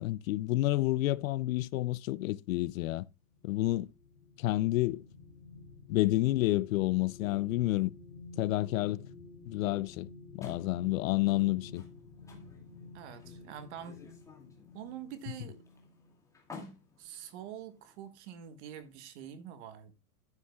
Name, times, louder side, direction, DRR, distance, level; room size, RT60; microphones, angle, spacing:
voice 1, 0.0-3.0 3.4-3.9 4.4-5.0 5.9-7.9 8.4-9.0 9.5-10.1 10.3-11.8, left 17 dB, 60° left, 0.5 m, -29 dB
sound 1, 3.2-16.2 16.6-16.8, left 3 dB, 80° left, 3.8 m, -52 dB
sound 2, 10.4-18.2, left 5 dB, 5° left, 2.3 m, -53 dB
voice 2, 12.9-14.0 14.7-15.6 17.0-19.9, right 9 dB, 45° right, 1.5 m, -45 dB
11.5 x 9.6 x 2.3 m
supercardioid pair, 165°, 46 cm